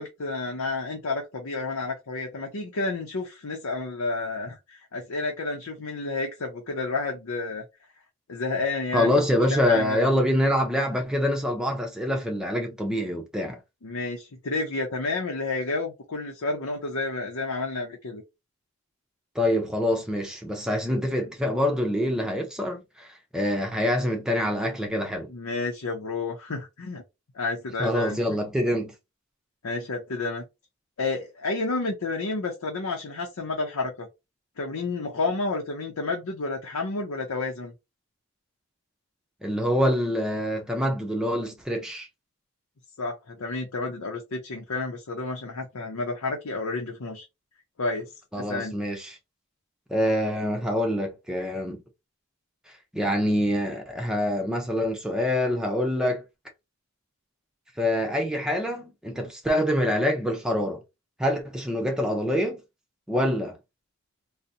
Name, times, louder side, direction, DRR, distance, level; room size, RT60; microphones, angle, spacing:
voice 1, 0.0-7.6 8.3-10.1 13.8-18.2 25.3-27.0 27.3-28.2 29.6-30.4 31.0-34.1 34.6-37.7 43.0-47.2 47.8-48.8, left 3 dB, 85° left, 0.7 m, -30 dB
voice 2, 8.9-13.6 19.3-25.3 27.8-28.9 39.4-42.1 48.3-49.2 49.9-51.8 52.9-56.2 57.8-60.8 61.2-62.6 63.1-63.6, left 1 dB, 5° right, 0.6 m, -25 dB
3.9 x 2.1 x 2.7 m
head